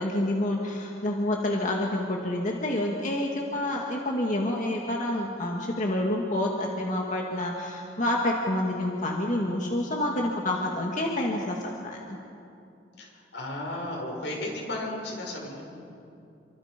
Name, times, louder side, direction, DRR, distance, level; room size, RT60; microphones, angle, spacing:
voice 1, 0.0-11.6 11.8-12.0, left 1 dB, 45° left, -1 dB, 2.2 m, -28 dB
voice 2, 13.0-15.6, left 1 dB, 85° left, -1 dB, 6.6 m, -34 dB
29.0 x 25.5 x 5.3 m, 2.6 s
head